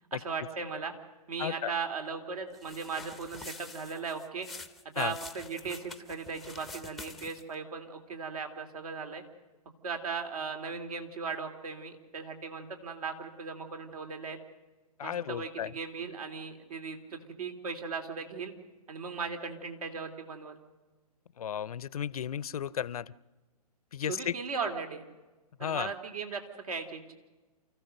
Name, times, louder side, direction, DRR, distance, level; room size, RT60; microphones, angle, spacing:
voice 1, 0.1-0.9 1.3-4.5 4.9-9.2 9.8-14.4 15.0-18.5 18.9-20.6 24.0-25.0 25.6-27.1, right 5 dB, 65° right, 5 dB, 3.1 m, -37 dB
voice 2, 1.4-1.7 5.0-5.1 15.0-15.7 21.4-23.1 23.9-24.3 25.6-25.9, left 9 dB, 65° left, 22 dB, 0.6 m, -34 dB
sound 1, 2.5-7.6, left 3 dB, ahead, 0.7 m, -47 dB
28.5 x 15.0 x 6.6 m, 1.2 s
hypercardioid pair, 135°, 20 cm